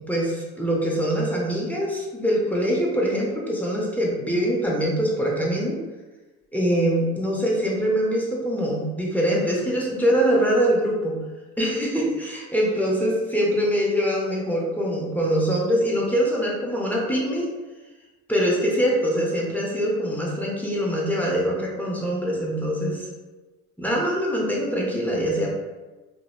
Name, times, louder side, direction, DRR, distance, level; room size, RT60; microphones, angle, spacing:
voice 1, 0.1-5.8 6.5-11.2 11.6-17.5 18.3-23.1 23.8-25.5, equal, 5° left, -4 dB, 0.6 m, -23 dB
2.7 x 2.1 x 2.3 m, 1.2 s
hypercardioid pair, 65°, 41 cm